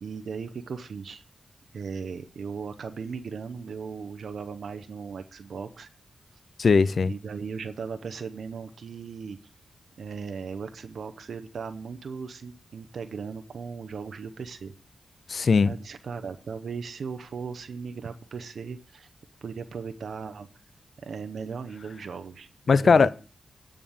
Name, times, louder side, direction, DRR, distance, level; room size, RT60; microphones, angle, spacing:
voice 1, 0.0-1.2 1.7-5.9 7.0-9.4 10.0-14.7 15.6-19.1 19.4-20.5 21.0-23.1, right 5 dB, 75° right, 0.7 m, -37 dB
voice 2, 6.6-7.1 15.3-15.7 22.7-23.1, left 5 dB, 60° left, 0.4 m, -19 dB
9.5 x 5.1 x 7.0 m
cardioid pair, 50°, 0 cm